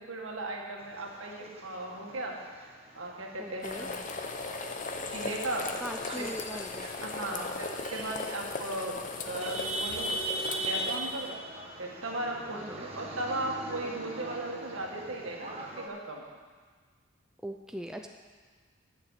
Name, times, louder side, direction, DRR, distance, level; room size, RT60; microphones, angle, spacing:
voice 1, 0.0-2.4 2.9-4.0 4.5-4.6 5.1-5.7 6.2-6.3 6.5-6.6 7.0-10.2 10.6-11.4 11.8-15.5 15.8-16.2, right 2 dB, 75° right, 0 dB, 1.8 m, -37 dB
sound 1, 0.8-15.9, right 1 dB, 30° right, 1.2 m, -40 dB
voice 2, 3.4-3.9 5.8-6.9 7.2-7.5 12.5-12.9 17.4-18.1, equal, 5° right, 3 dB, 0.4 m, -41 dB
sound 2, 3.6-11.3, left 3 dB, 35° left, 0.7 m, -38 dB
11.0 x 6.5 x 8.4 m, 1.5 s
head